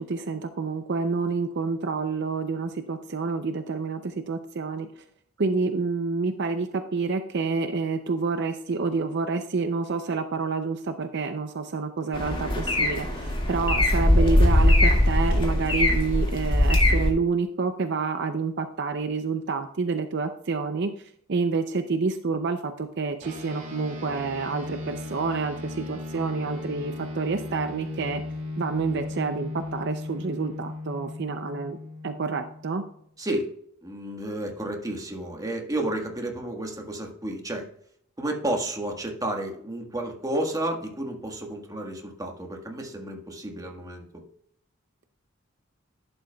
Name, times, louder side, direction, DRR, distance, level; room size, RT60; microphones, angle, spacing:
voice 1, 0.1-4.9 5.4-20.9 21.3-28.2 28.6-31.8 32.0-32.8, right 4 dB, 55° right, 8 dB, 0.6 m, -28 dB
sound 1, 12.1-17.1, left 1 dB, 25° left, 2.1 m, -21 dB
sound 2, 23.2-33.0, left 2 dB, 40° right, 2.5 m, -37 dB
voice 2, 33.2-33.5 33.8-37.7 38.2-44.0, right 1 dB, 15° right, 2 dB, 1.5 m, -31 dB
11.5 x 7.9 x 2.3 m, 0.66 s
head